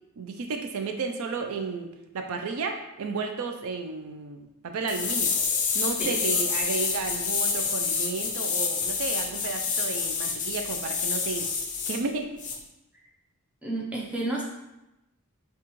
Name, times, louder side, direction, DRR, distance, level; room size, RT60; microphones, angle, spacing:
voice 1, 0.2-5.3 5.7-11.5 11.9-12.4, right 4 dB, 70° right, 5 dB, 0.4 m, -33 dB
sound 1, 4.9-12.0 12.4-12.6, left 5 dB, 35° left, 0.5 m, -28 dB
voice 2, 13.6-14.4, right 2 dB, 5° right, -4 dB, 0.7 m, -30 dB
5.8 x 2.4 x 3.0 m, 0.94 s
head